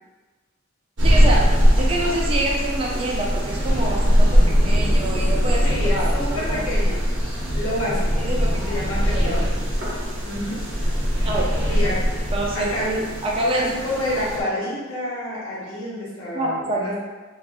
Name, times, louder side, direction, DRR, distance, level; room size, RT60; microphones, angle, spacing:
voice 1, 1.0-6.6 8.2-8.6 9.1-9.4 11.2-11.7 12.3-12.7 13.2-13.7 16.3-16.8, right 2 dB, 25° right, -3 dB, 0.4 m, -26 dB
sound 1, 1.0-14.4, equal, 60° right, 0.7 m, -21 dB
voice 2, 5.6-7.0 7.5-8.3 8.6-9.5 10.2-10.6 11.7-12.0 12.5-13.0 13.5-16.9, left 1 dB, 85° left, -8 dB, 1.0 m, -28 dB
2.5 x 2.3 x 3.7 m, 1.3 s
head